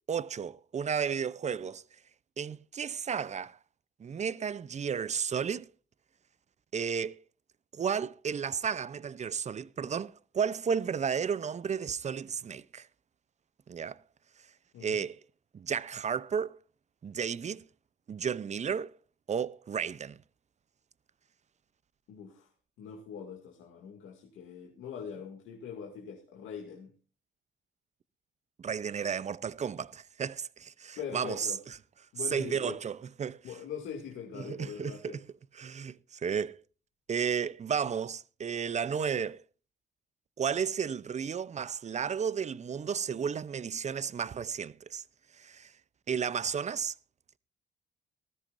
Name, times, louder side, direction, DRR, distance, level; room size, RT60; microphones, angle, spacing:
voice 1, 0.1-1.8 2.4-3.6 4.0-5.7 6.7-7.2 7.7-12.9 13.7-14.0 14.8-15.2 15.5-16.6 17.0-17.6 18.1-18.9 19.3-20.2 28.6-31.5 32.3-33.4 34.3-35.2 35.5-36.6 37.1-39.4 40.4-45.0 45.4-45.7 46.1-46.9, right 7 dB, 35° right, 0.6 m, -33 dB
voice 2, 22.1-22.5 22.8-26.9 31.0-31.6 32.1-32.8 33.4-35.2, left 7 dB, 85° left, 2.4 m, -42 dB
19.5 x 13.5 x 2.6 m
cardioid pair, 90°, 20 cm